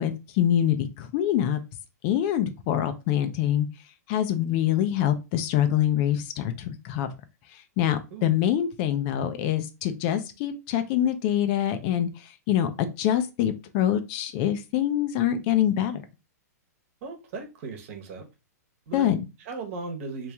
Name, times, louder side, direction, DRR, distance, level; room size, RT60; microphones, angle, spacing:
voice 1, 0.0-1.6 2.0-3.7 4.1-7.1 7.8-16.0 18.9-19.2, left 11 dB, 40° left, 9 dB, 0.5 m, -25 dB
voice 2, 17.0-18.2 18.9-19.1 19.4-20.3, right 4 dB, 50° right, 4 dB, 1.1 m, -37 dB
3.0 x 2.9 x 3.5 m, 0.27 s
hypercardioid pair, 135°, 9 cm